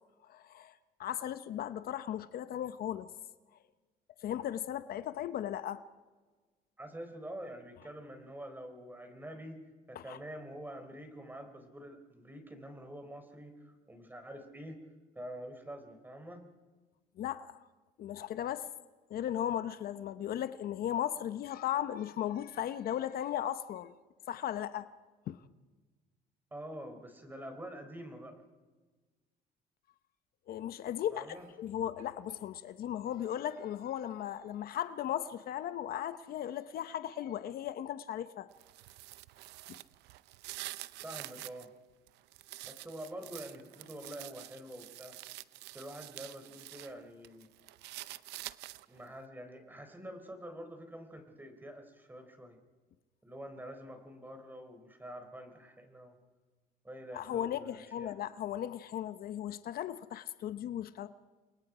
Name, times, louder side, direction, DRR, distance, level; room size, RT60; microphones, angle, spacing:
voice 1, 0.3-0.7 1.0-3.1 4.2-5.8 9.9-10.2 17.2-17.6 18.0-18.7 19.1-23.9 24.3-24.9 25.3-25.4 30.5-31.3 31.6-38.5 57.1-61.1, left 11 dB, 60° left, 0.9 m, -36 dB
voice 2, 6.8-9.6 9.9-14.8 15.2-16.5 26.5-28.4 31.1-31.5 41.0-41.7 42.7-45.2 45.6-47.5 48.9-52.6 53.2-56.2 56.8-58.1, right 1 dB, 10° right, 3.9 m, -46 dB
Speech, 31.0-32.8 33.1-34.5 34.8-35.8 36.4-37.1, right 4 dB, 45° right, 6.0 m, -64 dB
sound 1, 38.5-41.7 42.1-46.9 47.2-49.0, right 17 dB, 85° right, 0.7 m, -47 dB
29.5 x 22.5 x 5.0 m
cardioid pair, 110°, 17 cm